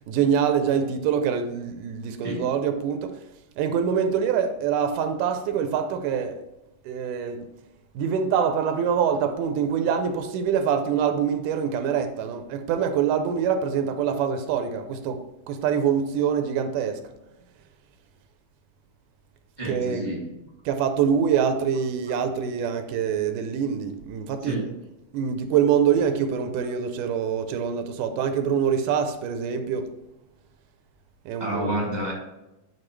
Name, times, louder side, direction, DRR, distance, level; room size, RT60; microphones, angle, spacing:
voice 1, 0.1-3.1 3.6-6.4 6.9-7.5 8.0-15.2 15.5-17.0 19.6-20.1 20.7-24.7 25.1-29.9 31.3-31.7, right 7 dB, 85° right, 2.2 m, -25 dB
voice 2, 19.6-20.3 24.4-24.6 31.4-32.1, right 1 dB, 10° left, 1.7 m, -29 dB
9.8 x 4.7 x 3.1 m
omnidirectional pair, 3.7 m